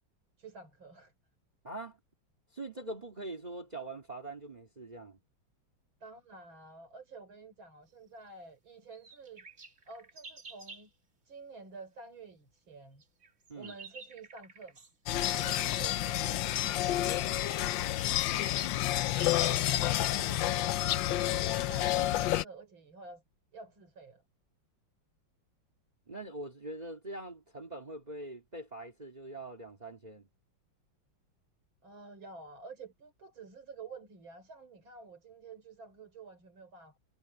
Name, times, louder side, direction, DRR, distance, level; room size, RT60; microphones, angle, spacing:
voice 1, 0.4-1.1 6.0-9.5 9.9-10.9 11.3-13.0 13.5-14.9 15.3-17.5 17.9-18.5 19.1-23.2 23.5-24.2 31.8-37.0, right 3 dB, 80° right, 5.5 m, -50 dB
voice 2, 1.6-2.0 2.5-5.2 13.5-13.7 26.1-30.3, right 2 dB, 20° right, 2.3 m, -43 dB
sound 1, 8.9-10.9 13.0-15.0 16.8-16.9 17.4-17.5 17.7-20.4, right 4 dB, 40° right, 2.3 m, -51 dB
sound 2, 15.1-22.4, left 14 dB, 75° left, 1.4 m, -29 dB
omnidirectional pair, 2.1 m